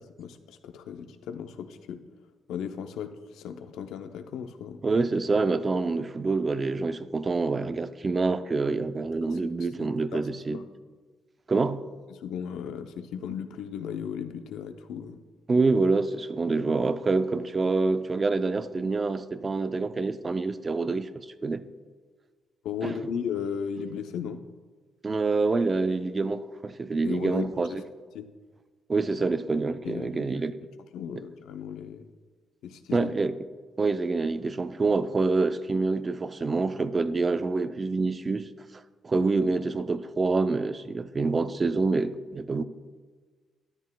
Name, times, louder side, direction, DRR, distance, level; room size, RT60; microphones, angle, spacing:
voice 1, 0.0-2.0 2.5-4.8 9.3-9.4 10.1-10.2 10.5-10.6 12.1-15.2 22.6-24.4 27.0-27.8 28.1-28.3 29.8-30.4 30.9-32.1 32.6-33.1, left 7 dB, 85° left, 0.6 m, -36 dB
voice 2, 4.8-10.6 11.5-11.9 15.5-21.7 22.8-22.9 25.0-27.7 28.9-30.5 32.9-33.3 33.8-38.5 39.0-42.6, right 3 dB, 30° right, 0.5 m, -26 dB
13.0 x 10.5 x 2.2 m
cardioid pair, 90°, 0 cm